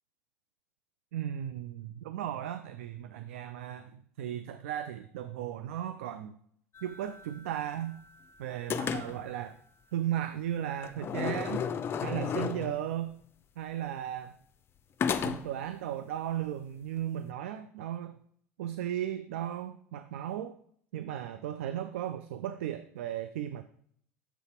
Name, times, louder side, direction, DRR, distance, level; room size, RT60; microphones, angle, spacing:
voice 1, 1.1-6.4 6.8-7.9 8.4-9.6 9.9-11.6 12.0-13.1 13.6-14.4 15.2-18.2 18.6-20.6 20.9-23.6, right 11 dB, 65° right, 10 dB, 0.4 m, -36 dB
sound 1, 6.7-8.2 8.7-9.4 10.8-12.9 15.0-15.7, left 7 dB, 30° left, 0.5 m, -34 dB
6.8 x 4.0 x 4.5 m, 0.64 s
figure-of-eight pair, 70°, 8 cm